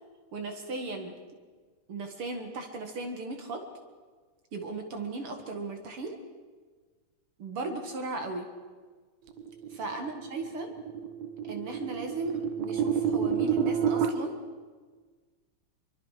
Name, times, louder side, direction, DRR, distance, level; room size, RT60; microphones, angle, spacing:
voice 1, 0.3-1.1 1.9-3.6 4.5-6.2 7.4-8.5 9.7-10.7 11.5-14.4, right 3 dB, 50° right, 5 dB, 1.8 m, -36 dB
sound 1, 9.4-14.1, right 7 dB, 75° right, 1.6 m, -30 dB
25.0 x 23.5 x 5.0 m, 1.5 s
omnidirectional pair, 4.7 m